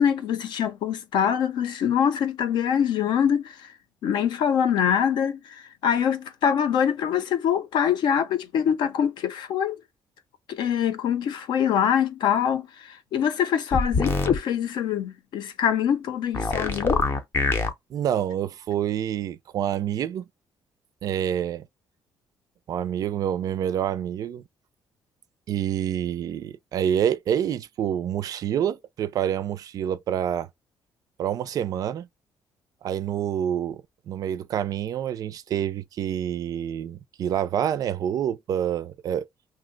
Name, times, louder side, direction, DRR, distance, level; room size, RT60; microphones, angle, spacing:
voice 1, 0.0-9.8 10.5-17.0, left 8 dB, 70° left, 0.6 m, -24 dB
sound 1, 13.7-14.4 16.3-17.7, left 3 dB, 30° left, 0.6 m, -24 dB
voice 2, 17.9-20.2 21.0-21.7 22.7-24.4 25.5-30.5 31.2-32.1 32.8-33.8 34.1-39.2, right 10 dB, 50° right, 0.3 m, -27 dB
2.7 x 2.1 x 3.8 m
cardioid pair, 165°, 8 cm